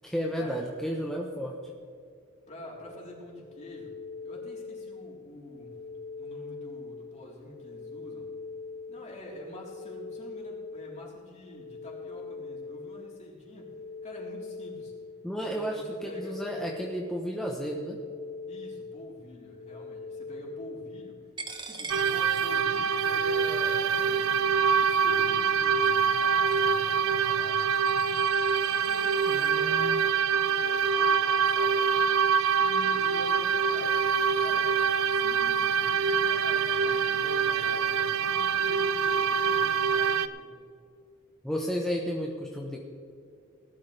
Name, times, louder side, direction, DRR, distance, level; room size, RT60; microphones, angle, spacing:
voice 1, 0.0-1.6 15.2-18.0 29.3-30.0 41.4-42.8, equal, ahead, -2 dB, 1.1 m, -33 dB
voice 2, 2.5-4.0 4.2-5.8 6.2-8.3 8.9-13.7 14.0-14.9 15.4-16.4 18.5-21.3 21.6-24.4 24.8-27.7 28.6-32.1 32.6-34.0 34.4-34.7 35.1-40.6, equal, 35° left, -4 dB, 4.0 m, -46 dB
sound 1, 2.8-21.6, left 4 dB, 60° left, 3.9 m, -42 dB
Coin (dropping), 21.4-29.5, right 3 dB, 20° right, 1.3 m, -46 dB
sound 2, 21.9-40.3, right 6 dB, 80° right, 0.6 m, -25 dB
19.0 x 12.5 x 3.5 m, 2.4 s
head